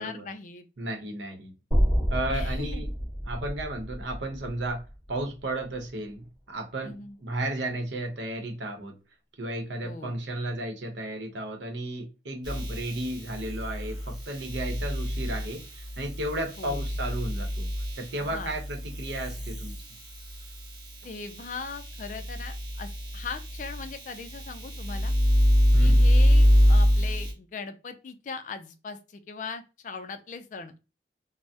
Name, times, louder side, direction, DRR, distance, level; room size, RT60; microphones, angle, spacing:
voice 1, 0.0-0.7 2.3-2.9 6.8-7.2 9.8-10.2 16.6-16.8 18.2-18.5 21.0-25.1 25.8-30.7, left 5 dB, 45° left, 0.3 m, -39 dB
voice 2, 0.8-1.5 2.1-2.9 3.3-4.8 5.1-8.9 9.4-17.7 18.0-19.7 25.7-26.0, right 1 dB, 85° right, 0.8 m, -34 dB
sound 1, 1.7-5.9, equal, 10° left, 1.4 m, -29 dB
sound 2, 12.4-20.8 21.2-27.3, equal, 25° right, 0.8 m, -25 dB
3.3 x 2.0 x 2.6 m
head